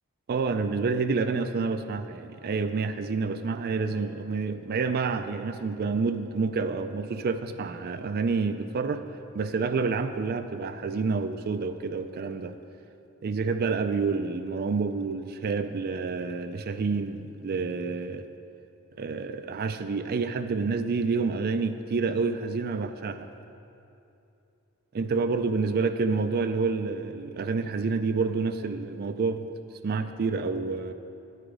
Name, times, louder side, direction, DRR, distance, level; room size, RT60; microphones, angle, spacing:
voice 1, 0.3-9.0 9.3-12.5 13.2-18.2 19.0-23.3 24.9-29.5 29.8-30.9, right 4 dB, 45° right, 9 dB, 0.4 m, -28 dB
9.8 x 9.1 x 4.9 m, 2.7 s
head